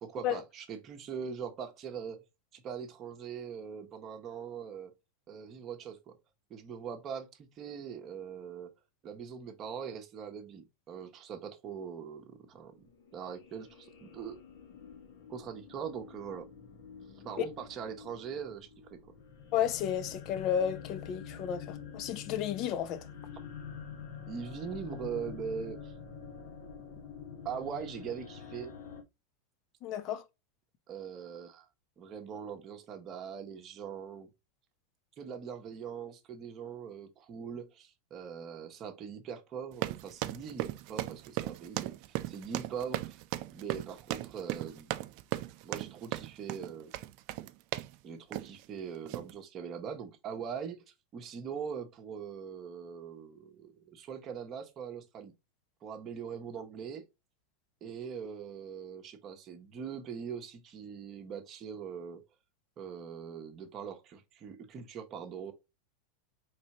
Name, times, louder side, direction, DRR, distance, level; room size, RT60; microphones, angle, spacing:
voice 1, 0.0-2.2 2.5-4.9 5.3-6.2 6.5-8.7 9.0-12.9 13.1-14.4 15.3-16.5 17.2-19.1 24.3-25.9 27.4-28.7 30.9-31.6 32.0-34.3 35.2-41.9 42.3-43.2 43.5-44.9 45.6-46.9 48.0-55.3 55.8-57.0 57.8-62.2 62.8-65.5, right 7 dB, 30° right, 0.9 m, -42 dB
sound 1, 12.8-29.0, left 7 dB, 65° left, 1.1 m, -47 dB
voice 2, 19.5-23.0 29.8-30.2, left 9 dB, 40° left, 0.6 m, -32 dB
sound 2, 39.7-48.0 48.3-48.6 49.1-49.3, right 16 dB, 50° right, 0.4 m, -37 dB
4.2 x 3.3 x 2.9 m
supercardioid pair, 140°, 0 cm